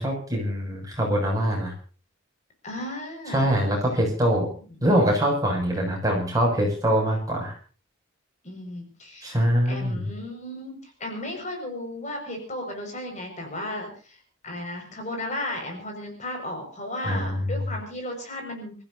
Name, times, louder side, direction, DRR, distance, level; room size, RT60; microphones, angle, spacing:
voice 1, 0.0-1.7 3.3-4.5 4.8-7.6 9.2-10.1 17.0-17.5, equal, 20° right, -1 dB, 6.9 m, -23 dB
voice 2, 2.6-3.5 4.8-4.9 8.4-9.3 9.7-18.7, left 1 dB, 40° left, 3 dB, 5.7 m, -35 dB
28.0 x 15.0 x 2.7 m, 0.38 s
head